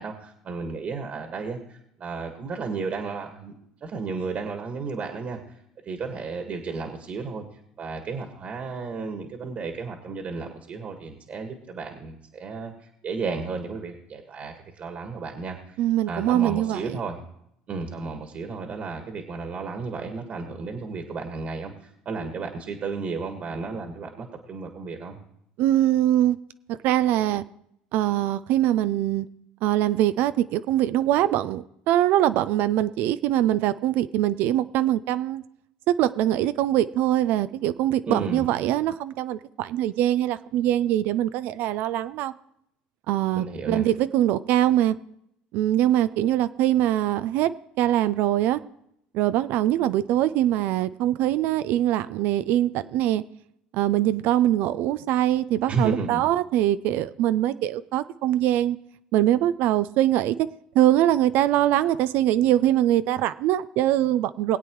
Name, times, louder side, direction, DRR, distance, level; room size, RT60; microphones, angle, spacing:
voice 1, 0.0-3.5 3.8-5.6 5.8-7.4 7.8-15.8 16.1-17.2 17.7-25.2 38.1-38.5 43.3-43.9 55.7-56.2, right 4 dB, 45° right, 4 dB, 1.7 m, -33 dB
voice 2, 15.8-17.0 25.6-26.4 26.7-27.4 27.9-29.3 29.6-35.4 36.0-42.3 43.1-45.0 45.5-47.5 47.8-48.6 49.1-53.2 53.7-58.8 59.1-60.4 60.7-64.6, right 13 dB, 65° right, 14 dB, 0.4 m, -23 dB
21.0 x 8.3 x 3.1 m, 0.74 s
hypercardioid pair, 75°, 3 cm